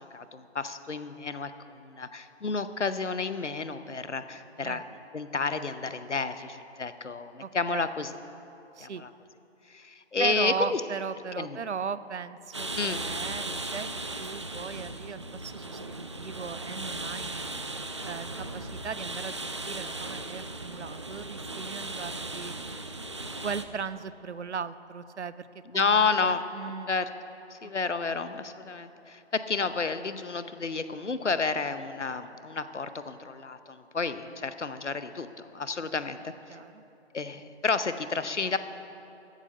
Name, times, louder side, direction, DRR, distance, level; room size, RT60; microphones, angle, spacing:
voice 1, 0.1-1.5 1.8-4.8 5.1-8.1 8.8-9.1 9.7-10.8 11.4-11.6 12.7-13.0 13.5-13.6 25.7-26.4 26.9-27.1 27.5-35.3 35.5-36.3 37.1-38.6, left 4 dB, 85° left, 12 dB, 0.8 m, -30 dB
voice 2, 7.4-7.9 8.8-9.0 10.2-13.9 14.2-17.4 18.0-22.6 23.4-25.5 25.7-26.9 27.6-27.7 28.0-28.2 35.8-35.9 36.5-36.8, right 6 dB, 75° right, 15 dB, 0.6 m, -37 dB
sound 1, 12.5-23.6, right 2 dB, 25° right, 0.4 m, -37 dB
14.5 x 9.1 x 5.5 m, 2.9 s
figure-of-eight pair, 135°, 35 cm